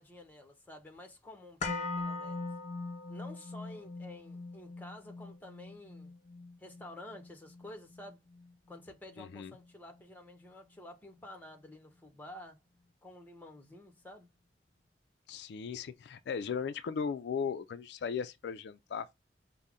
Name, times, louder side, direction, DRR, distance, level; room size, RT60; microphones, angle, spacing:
voice 1, 0.0-2.5 3.1-6.1 6.6-8.2 8.7-12.6 13.0-14.3, left 1 dB, 10° left, 1.0 m, -50 dB
sound 1, 1.6-9.7 10.0-10.1, left 3 dB, 45° left, 0.8 m, -42 dB
voice 2, 9.2-9.5 15.3-19.1, left 6 dB, 70° left, 0.3 m, -37 dB
5.3 x 2.1 x 3.6 m
head